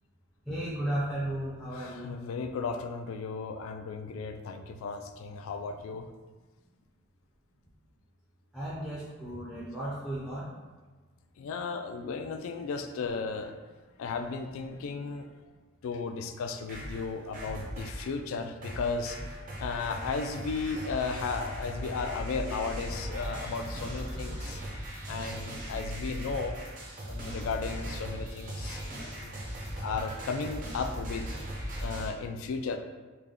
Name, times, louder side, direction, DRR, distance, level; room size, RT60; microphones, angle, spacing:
voice 1, 0.5-2.2 8.5-10.5, right 1 dB, ahead, -9 dB, 0.5 m, -34 dB
voice 2, 1.7-6.1 11.4-13.5 14.0-15.3 15.8-24.6 25.1-26.5 27.1-29.5 29.8-31.3 31.8-32.8, left 4 dB, 70° left, 7 dB, 0.3 m, -35 dB
sound 1, 16.4-18.1 18.6-32.1, equal, 40° right, 0.7 m, -38 dB
3.4 x 2.2 x 3.6 m, 1.3 s
head